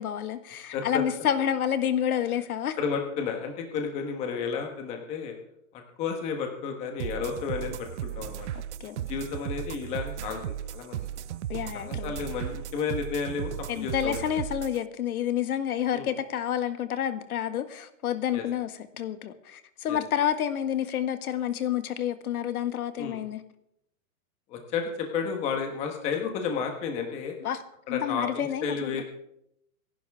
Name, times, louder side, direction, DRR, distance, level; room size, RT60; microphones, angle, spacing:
voice 1, 0.0-2.8 8.8-9.0 11.5-12.1 13.7-23.4 27.4-27.6 27.9-29.0, left 10 dB, 80° left, 10 dB, 1.6 m, -29 dB
voice 2, 2.8-5.3 5.7-8.5 9.1-11.1 11.7-14.2 15.9-16.1 18.3-18.4 19.9-20.0 23.0-23.2 24.5-27.4 27.9-29.0, left 6 dB, 15° left, 4 dB, 1.3 m, -32 dB
sound 1, 7.0-14.8, right 11 dB, 55° right, 0.5 m, -36 dB
26.0 x 11.5 x 3.6 m, 0.77 s
supercardioid pair, 180°, 43 cm